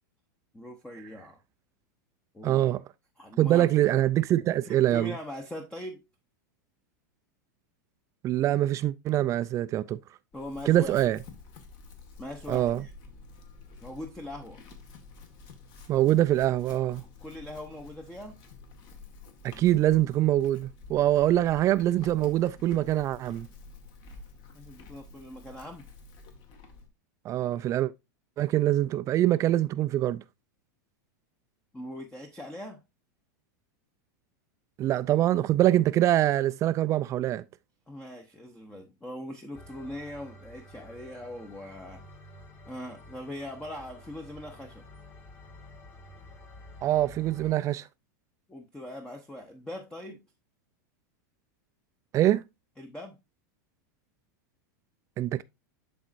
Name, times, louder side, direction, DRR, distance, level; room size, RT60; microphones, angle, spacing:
voice 1, 0.5-1.4 2.3-2.7 3.2-3.7 4.6-6.0 10.3-11.0 12.2-12.9 13.8-14.6 17.0-18.4 24.5-25.8 31.7-32.8 37.9-42.0 42.7-44.8 48.5-50.2 52.8-53.2, left 1 dB, 10° left, 0.8 m, -41 dB
voice 2, 2.4-2.8 3.4-5.2 8.2-10.0 10.7-11.2 12.5-12.8 15.9-17.0 19.4-23.5 27.3-27.9 28.4-30.2 34.8-37.4 46.8-47.9 52.1-52.4 55.2-55.4, right 13 dB, 30° right, 0.4 m, -24 dB
Chewing mastication / Livestock farm animals working animals, 10.3-26.9, left 4 dB, 45° left, 1.7 m, -50 dB
sound 1, 39.5-47.5, left 1 dB, 25° left, 1.7 m, -50 dB
11.5 x 4.1 x 2.5 m
supercardioid pair, 130°, 10 cm